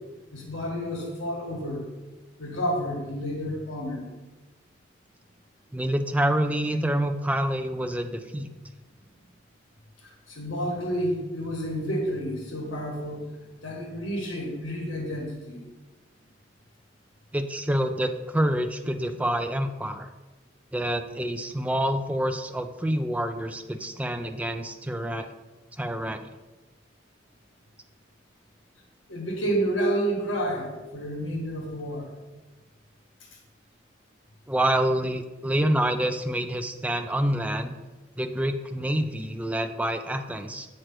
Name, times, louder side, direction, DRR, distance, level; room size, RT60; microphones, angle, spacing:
voice 1, 0.3-1.8 2.4-4.1 10.0-13.3 13.6-15.6 29.1-32.1, equal, 85° left, -1 dB, 1.5 m, -30 dB
voice 2, 5.7-8.5 17.3-20.1 20.7-25.3 25.8-26.2 34.5-37.8 38.2-40.8, right 1 dB, 5° right, 7 dB, 0.3 m, -27 dB
7.7 x 3.2 x 5.9 m, 1.2 s
head